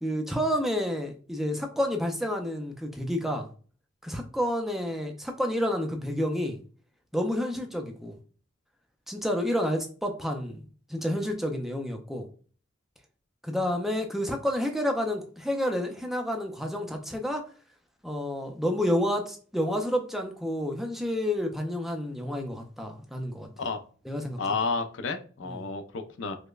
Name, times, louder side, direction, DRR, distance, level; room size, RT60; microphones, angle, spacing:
voice 1, 0.0-3.5 4.0-6.6 7.1-8.2 9.1-12.3 13.4-17.4 18.0-23.5 24.0-24.6 25.4-25.6, equal, ahead, 3 dB, 0.4 m, -29 dB
voice 2, 24.4-26.4, left 4 dB, 70° left, 7 dB, 0.5 m, -31 dB
5.0 x 2.1 x 2.3 m, 0.40 s
head